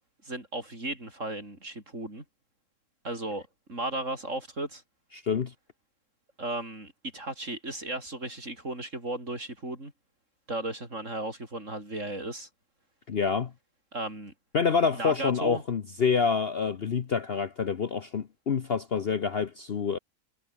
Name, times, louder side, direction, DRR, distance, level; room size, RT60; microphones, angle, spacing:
voice 1, 0.2-2.2 3.0-4.8 6.4-9.9 10.5-12.5 13.9-14.3 14.9-15.6, right 2 dB, 50° right, 7.0 m, -35 dB
voice 2, 5.2-5.5 13.1-13.5 14.5-20.0, left 6 dB, 45° left, 1.0 m, -27 dB
omnidirectional pair, 1.6 m